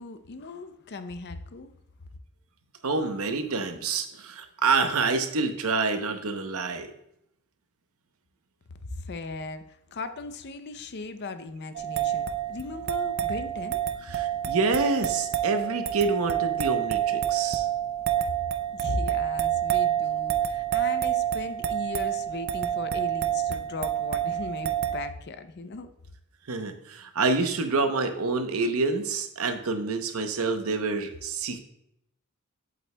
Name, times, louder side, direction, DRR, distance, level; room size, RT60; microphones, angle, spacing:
voice 1, 0.0-1.7 8.7-13.8 18.7-25.9, left 3 dB, 50° left, 0.5 m, -37 dB
voice 2, 2.8-6.9 14.1-17.7 26.5-31.6, right 3 dB, 85° right, 0.8 m, -27 dB
sound 1, 11.7-25.1, right 11 dB, 50° right, 0.4 m, -28 dB
7.9 x 7.7 x 2.2 m
head